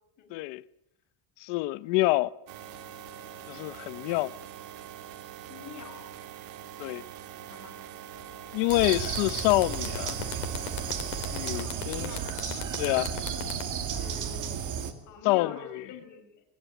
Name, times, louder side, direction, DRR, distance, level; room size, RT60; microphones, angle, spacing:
voice 1, 0.3-0.6 1.4-2.3 3.5-4.3 6.8-7.0 8.5-10.1 11.3-12.1 12.4-13.1 15.2-15.8, left 20 dB, 60° left, 0.9 m, -27 dB
sound 1, 2.5-11.6, right 9 dB, 85° right, 2.1 m, -44 dB
voice 2, 5.5-6.0 7.3-7.9 11.5-12.3 13.9-14.6 15.0-16.3, left 7 dB, 35° left, 6.1 m, -46 dB
sound 2, 8.2-8.3 8.6-14.7, left 15 dB, 85° left, 3.2 m, -39 dB
sound 3, 8.7-14.9, right 7 dB, 40° right, 2.2 m, -33 dB
22.0 x 20.5 x 9.2 m
cardioid pair, 180°, 49 cm